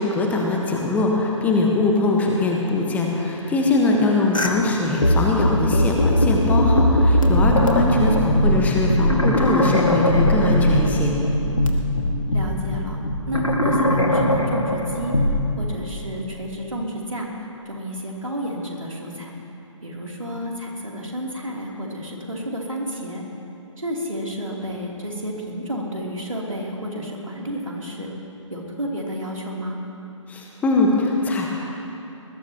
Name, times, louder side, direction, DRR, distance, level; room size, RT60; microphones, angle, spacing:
voice 1, 0.0-11.1 30.3-31.5, left 2 dB, 10° left, -1 dB, 1.5 m, -22 dB
sound 1, 4.3-4.5 5.0-15.4, left 1 dB, 85° left, 2.2 m, -20 dB
voice 2, 12.3-13.0 13.3-19.3 19.8-23.2 23.8-28.1 28.5-29.8, equal, 85° right, -2 dB, 3.5 m, -31 dB
21.5 x 20.5 x 3.1 m, 2.9 s
figure-of-eight pair, 135°, 17 cm